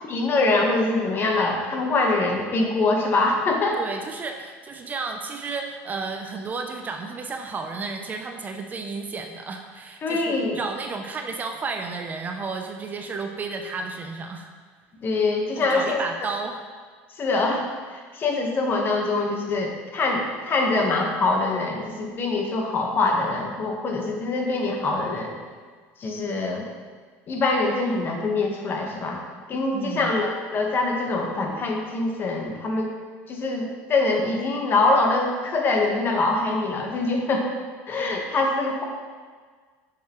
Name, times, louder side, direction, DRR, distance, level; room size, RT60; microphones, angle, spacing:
voice 1, 0.1-3.8 10.0-10.6 15.0-16.0 17.2-17.6 17.9-25.4 26.0-26.7 27.3-29.2 29.5-32.9 33.3-37.5 37.9-38.8, left 3 dB, 35° left, 1 dB, 1.2 m, -24 dB
voice 2, 3.8-14.5 15.5-16.6 29.7-30.1, right 4 dB, 30° right, 4 dB, 0.5 m, -32 dB
6.9 x 6.5 x 3.0 m, 1.6 s
supercardioid pair, 115°, 6 cm